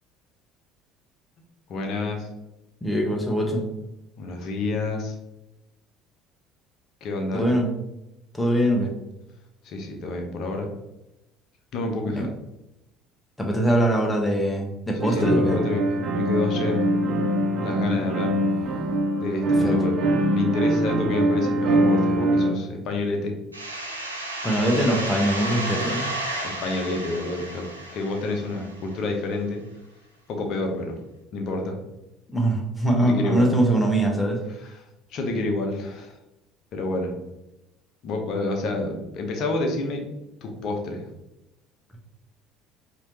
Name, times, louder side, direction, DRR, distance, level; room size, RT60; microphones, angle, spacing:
voice 1, 1.7-2.3 4.2-5.1 7.0-7.5 9.6-10.7 11.7-12.3 15.0-16.8 17.5-18.3 19.2-20.0 20.3-23.3 26.4-27.6 27.9-29.6 30.3-31.0 31.3-31.8 33.0-33.5 34.6-34.8 35.1-36.2 36.7-37.1 38.0-40.0 40.4-41.1, left 2 dB, 50° left, 2 dB, 0.9 m, -28 dB
voice 2, 2.8-3.6 7.3-7.7 8.3-8.9 12.1-12.3 13.4-15.6 19.6-19.8 24.4-26.0 32.3-34.4, right 1 dB, 10° left, 0 dB, 1.1 m, -22 dB
sound 1, 15.0-22.5, right 1 dB, 45° right, 0.9 m, -23 dB
sound 2, 23.5-29.0, right 1 dB, 90° right, 0.5 m, -32 dB
4.7 x 3.0 x 2.9 m, 0.91 s
figure-of-eight pair, 60°, 0 cm